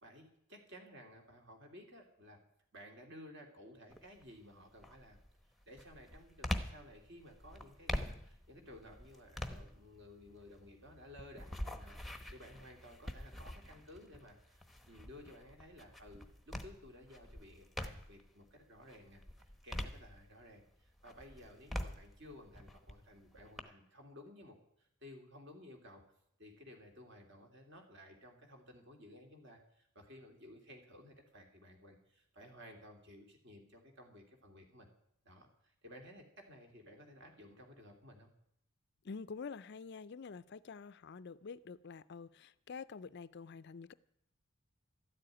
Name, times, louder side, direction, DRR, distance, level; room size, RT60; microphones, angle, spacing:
voice 1, 0.0-2.4 2.7-5.2 5.6-19.2 19.6-26.0 26.4-34.9 35.2-38.3, left 1 dB, 55° right, 2.9 m, -56 dB
sound 1, 3.9-4.3 4.8-18.3 18.8-20.6 21.0-23.6, left 1 dB, ahead, 0.9 m, -45 dB
voice 2, 39.0-43.9, left 5 dB, 50° left, 0.4 m, -47 dB
13.0 x 7.7 x 9.9 m
head